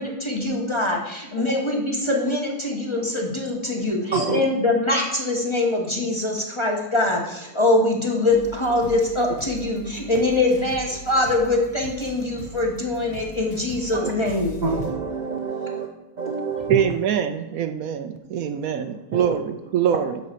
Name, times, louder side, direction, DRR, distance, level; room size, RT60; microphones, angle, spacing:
voice 1, 0.0-14.6, left 2 dB, 20° left, 0 dB, 1.1 m, -23 dB
sound 1, 8.3-14.9, right 1 dB, 80° left, 1.9 m, -40 dB
voice 2, 14.6-15.9 16.2-16.9 19.1-19.3, right 4 dB, 45° right, 2 dB, 0.6 m, -26 dB
voice 3, 16.7-20.2, right 8 dB, 70° right, 8 dB, 1.0 m, -24 dB
8.2 x 4.0 x 6.7 m, 0.95 s
omnidirectional pair, 1.6 m